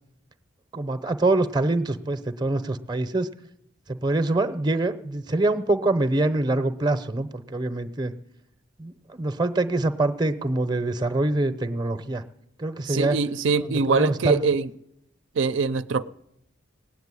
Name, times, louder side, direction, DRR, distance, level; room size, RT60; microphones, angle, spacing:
voice 1, 0.7-3.3 3.9-8.1 8.8-12.2 12.6-13.2 13.6-14.4, right 2 dB, 20° right, 11 dB, 0.7 m, -25 dB
voice 2, 12.9-14.7 15.4-16.1, right 4 dB, 70° right, 11 dB, 0.5 m, -23 dB
18.5 x 8.0 x 9.7 m, 0.79 s
head